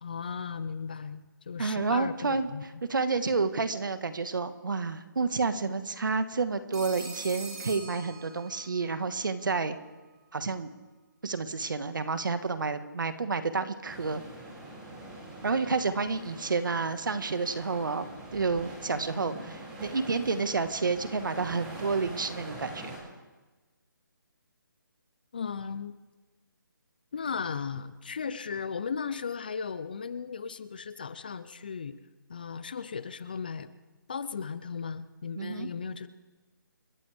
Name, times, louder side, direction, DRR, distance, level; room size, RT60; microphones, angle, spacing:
voice 1, 0.0-2.6 25.3-26.0 27.1-32.0 32.3-33.7 34.1-36.1, left 6 dB, 25° left, 15 dB, 0.5 m, -36 dB
voice 2, 1.6-9.8 10.3-10.7 11.2-14.2 15.4-23.0 35.3-35.7, right 4 dB, 70° right, 10 dB, 1.6 m, -30 dB
Telephone, 6.7-8.8, right 3 dB, 50° right, 4.4 m, -42 dB
sound 1, 13.8-23.0, right 1 dB, 10° right, 2.8 m, -44 dB
29.5 x 14.0 x 3.5 m, 1.2 s
hypercardioid pair, 175°, 11 cm